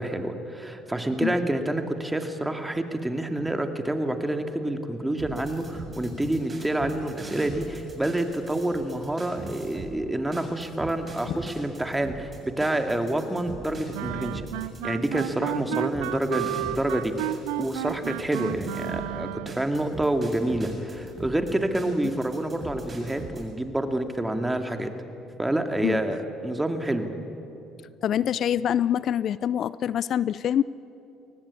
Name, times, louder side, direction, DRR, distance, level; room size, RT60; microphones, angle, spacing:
voice 1, 0.0-14.4 14.8-24.9 25.4-27.1, right 1 dB, 10° right, 6 dB, 2.4 m, -28 dB
sound 1, 5.2-9.9 10.3-19.1 19.5-23.4, right 3 dB, 30° right, 7.3 m, -41 dB
Wind instrument woodwind instrument, 13.9-19.7, right 16 dB, 85° right, 0.5 m, -32 dB
voice 2, 28.0-30.6, left 10 dB, 55° left, 19 dB, 0.4 m, -25 dB
23.0 x 18.5 x 8.5 m, 3.0 s
hypercardioid pair, 65°, 0 cm